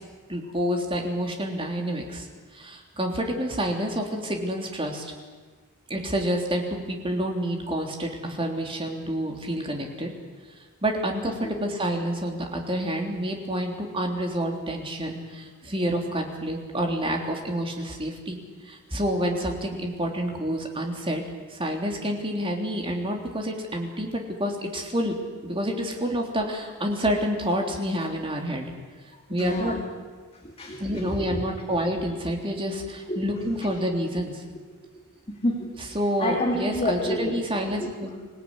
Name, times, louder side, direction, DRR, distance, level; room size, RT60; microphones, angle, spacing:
voice 1, 0.3-2.3 2.5-5.1 5.9-10.1 10.8-18.4 18.6-21.2 21.5-25.2 25.4-28.7 29.3-29.7 30.8-34.4 35.9-38.1, equal, 25° right, 2 dB, 3.4 m, -28 dB
voice 2, 29.1-29.8 30.3-31.4 33.1-33.7 34.9-38.3, left 1 dB, 25° left, 1 dB, 2.2 m, -31 dB
26.0 x 17.5 x 9.7 m, 1.5 s
head